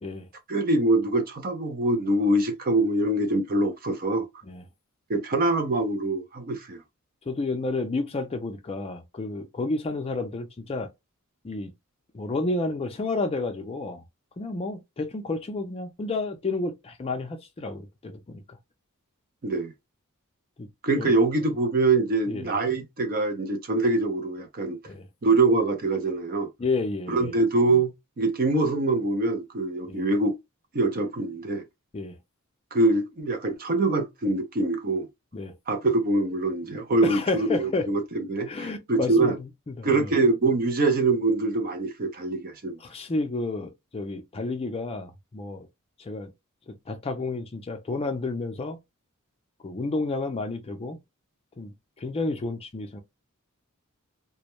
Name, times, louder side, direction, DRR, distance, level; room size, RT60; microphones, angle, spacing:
voice 1, 0.5-4.3 5.1-6.8 19.4-19.7 20.8-24.8 25.2-26.5 27.1-30.4 30.7-31.7 32.7-35.1 35.7-39.4 39.8-42.8, right 2 dB, 40° right, 0.5 m, -24 dB
voice 2, 7.3-10.9 11.4-11.7 12.1-14.0 14.4-18.4 20.6-20.7 21.0-21.1 22.3-22.6 24.9-25.1 26.6-27.3 29.9-30.0 31.9-32.2 35.3-35.5 37.0-37.9 38.5-40.1 42.8-45.7 46.0-46.3 46.7-48.8 49.6-51.0 51.6-53.0, left 3 dB, 25° left, 0.4 m, -31 dB
2.2 x 2.1 x 2.9 m
head